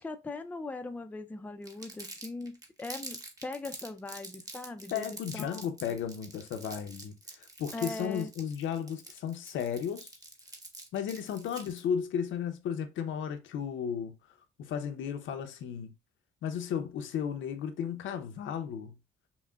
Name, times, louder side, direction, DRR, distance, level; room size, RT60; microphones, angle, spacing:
voice 1, 0.0-5.6 7.7-8.3, left 2 dB, 10° left, 0.4 m, -40 dB
Crumpling crinkling, 1.6-11.8, right 2 dB, 20° right, 1.0 m, -46 dB
voice 2, 4.9-10.1 10.9-14.1 14.6-15.9 16.4-18.9, left 8 dB, 75° left, 0.6 m, -34 dB
5.6 x 2.1 x 2.3 m
cardioid pair, 90°, 20 cm